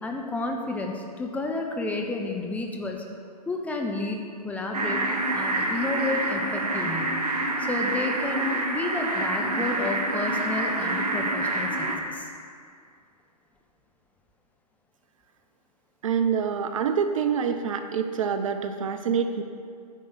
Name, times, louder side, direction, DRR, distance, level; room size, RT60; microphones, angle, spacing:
voice 1, 0.0-3.0 3.5-5.0 5.3-7.3 7.6-12.3, left 2 dB, 5° left, 1 dB, 0.8 m, -31 dB
sound 1, 4.7-12.0, right 2 dB, 70° right, 1.3 m, -27 dB
voice 2, 16.0-19.4, right 7 dB, 50° right, 8 dB, 0.6 m, -26 dB
9.8 x 5.4 x 7.0 m, 2.3 s
figure-of-eight pair, 115°, 21 cm